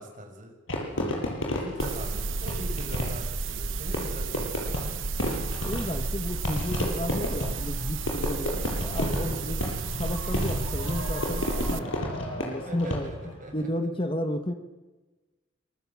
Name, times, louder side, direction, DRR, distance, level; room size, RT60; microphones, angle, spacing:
voice 1, 0.0-5.0 9.1-9.6 12.7-13.7, right 1 dB, 40° right, 3 dB, 6.2 m, -42 dB
Fireworks, 0.7-13.4, left 1 dB, 80° left, 7.8 m, -32 dB
sound 1, 1.8-11.8, right 3 dB, 80° right, 1.1 m, -32 dB
voice 2, 5.6-9.6 10.0-14.5, left 1 dB, 25° left, 7 dB, 1.6 m, -33 dB
26.0 x 24.5 x 7.4 m, 1.2 s
head